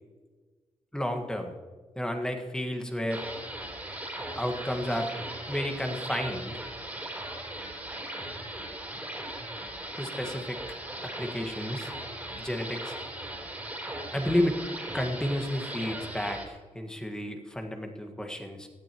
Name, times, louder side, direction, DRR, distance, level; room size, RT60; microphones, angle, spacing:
voice 1, 0.9-1.5 1.9-3.2 4.3-5.1 5.5-6.6 10.0-10.6 11.0-11.9 12.4-12.9 14.1-14.6 14.9-18.7, left 1 dB, 5° left, 3 dB, 1.6 m, -31 dB
sound 1, 3.1-16.5, right 1 dB, 10° right, 3.6 m, -38 dB
17.5 x 13.0 x 3.0 m, 1.4 s
wide cardioid pair, 140°, 12 cm